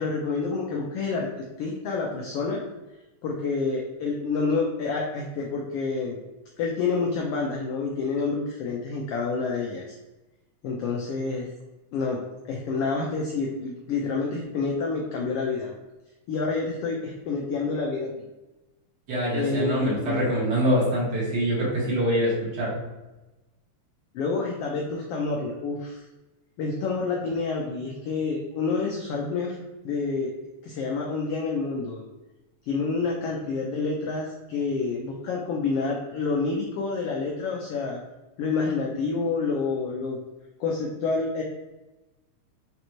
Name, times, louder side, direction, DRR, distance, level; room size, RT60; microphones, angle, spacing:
voice 1, 0.0-2.6 3.2-6.2 6.6-10.0 10.6-11.5 11.9-12.2 12.5-15.7 16.3-18.1 19.3-20.3 24.1-26.0 26.6-29.5 29.8-30.3 30.6-32.0 32.6-38.0 38.4-40.2 40.6-41.4, left 4 dB, 90° left, -1 dB, 1.3 m, -28 dB
voice 2, 19.1-22.7, equal, 40° right, -7 dB, 1.9 m, -24 dB
5.2 x 3.4 x 2.9 m, 1.1 s
omnidirectional pair, 3.3 m